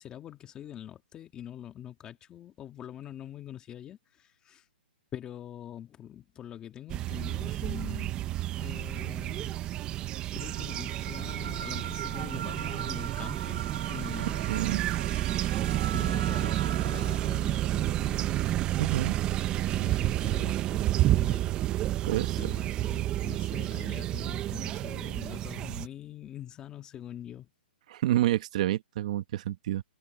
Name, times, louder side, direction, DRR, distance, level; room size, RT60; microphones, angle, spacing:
voice 1, 0.0-4.6 5.1-8.3 8.6-9.7 10.3-14.9 15.9-18.9 19.2-21.9 22.4-27.5, left 11 dB, 15° left, 1.7 m, -44 dB
sound 1, 6.9-25.9, right 14 dB, 15° right, 0.5 m, -30 dB
sound 2, 10.4-17.6, right 8 dB, 70° right, 1.6 m, -41 dB
voice 2, 14.5-14.8 18.8-19.2 22.0-22.4 27.9-29.8, right 13 dB, 40° right, 1.3 m, -28 dB
hypercardioid pair, 165°, 6 cm